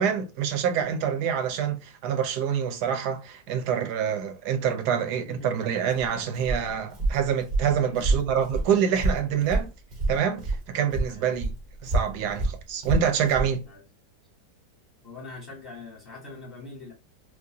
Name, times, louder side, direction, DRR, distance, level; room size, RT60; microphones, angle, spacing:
voice 1, 0.0-9.7 10.1-11.5 11.8-13.6, right 8 dB, 70° right, 1.2 m, -26 dB
Walk footsteps, 5.9-10.6 10.9-13.5, right 2 dB, 40° right, 0.6 m, -28 dB
voice 2, 7.8-8.2 9.4-9.6 11.1-11.4 13.6-13.8 15.0-16.9, left 3 dB, 40° left, 1.1 m, -43 dB
4.8 x 2.1 x 2.6 m
omnidirectional pair, 1.9 m